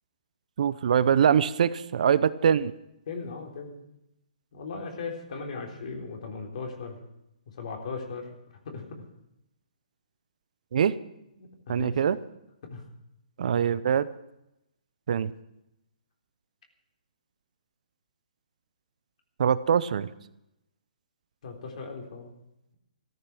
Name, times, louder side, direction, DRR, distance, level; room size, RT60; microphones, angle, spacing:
voice 1, 0.6-2.7 10.7-11.0 11.7-12.2 13.4-14.1 15.1-15.3 19.4-20.1, right 8 dB, 60° right, 16 dB, 0.7 m, -23 dB
voice 2, 3.1-3.8 4.5-7.0 7.5-8.3 8.7-9.0 11.4-12.1 12.6-12.8 21.4-22.3, left 4 dB, 55° left, 2 dB, 3.8 m, -38 dB
14.0 x 13.5 x 6.2 m, 0.86 s
hypercardioid pair, 140°, 4 cm